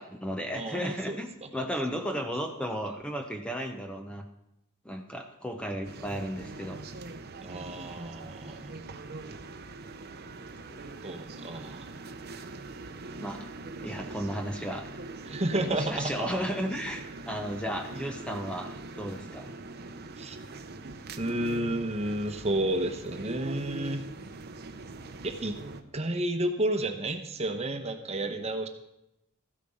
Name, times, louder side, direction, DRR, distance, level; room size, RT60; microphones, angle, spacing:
voice 1, 0.0-4.3 4.8-6.8 10.7-10.8 13.2-13.5 13.8-14.9 15.5-19.5, equal, 5° left, 4 dB, 0.7 m, -34 dB
voice 2, 0.5-1.5 1.9-2.2 7.4-8.7 11.0-11.9 15.3-16.3 20.2-20.4 21.2-24.0 25.2-25.6 25.9-28.7, right 1 dB, 30° right, 6 dB, 1.0 m, -31 dB
sound 1, 5.8-25.8, right 3 dB, 50° right, 0.8 m, -42 dB
14.0 x 8.3 x 5.5 m, 0.86 s
head